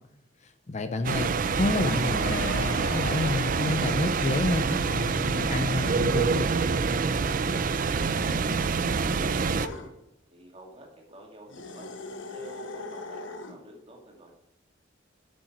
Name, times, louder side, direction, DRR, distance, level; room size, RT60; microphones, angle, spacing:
voice 1, 0.4-6.5, left 2 dB, 35° left, 9 dB, 0.6 m, -29 dB
sound 1, 1.0-9.7, right 4 dB, 45° right, 0.5 m, -26 dB
sound 2, 2.0-3.5 9.6-9.9 11.5-13.6, left 3 dB, 80° left, 1.2 m, -39 dB
voice 2, 7.7-9.9 10.3-11.9 12.3-14.3, right 1 dB, 30° right, 0 dB, 2.3 m, -49 dB
8.3 x 6.4 x 5.9 m, 0.87 s
head